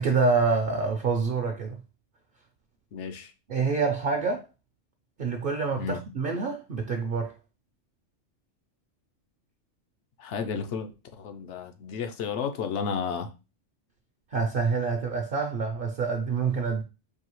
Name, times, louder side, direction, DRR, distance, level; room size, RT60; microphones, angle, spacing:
voice 1, 0.0-1.8 3.5-4.5 5.2-7.3 14.3-16.8, right 4 dB, 55° right, 0.6 m, -26 dB
voice 2, 2.9-3.3 5.8-6.0 10.2-10.9 11.2-13.3, left 6 dB, 70° left, 0.9 m, -32 dB
4.7 x 2.8 x 3.0 m
omnidirectional pair, 1.3 m